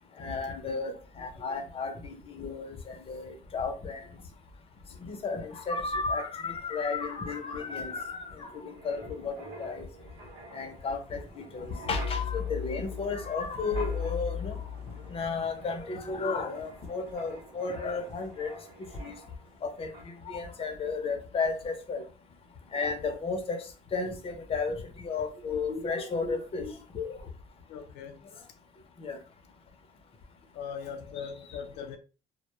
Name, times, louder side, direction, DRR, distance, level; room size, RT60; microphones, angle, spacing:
voice 1, 0.2-4.0 5.0-9.9 10.5-14.5 15.1-18.5 19.0-19.2 19.6-19.9 20.3-22.0 22.7-23.6 23.9-24.8 25.0-27.2 29.0-29.2, left 4 dB, 35° left, 0.6 m, -33 dB
Wind, 7.2-19.6 19.9-20.2, left 5 dB, 85° right, 0.8 m, -40 dB
voice 2, 27.7-28.2 30.5-32.0, left 7 dB, 80° left, 0.4 m, -40 dB
2.1 x 2.1 x 2.9 m
cardioid pair, 110°, 17 cm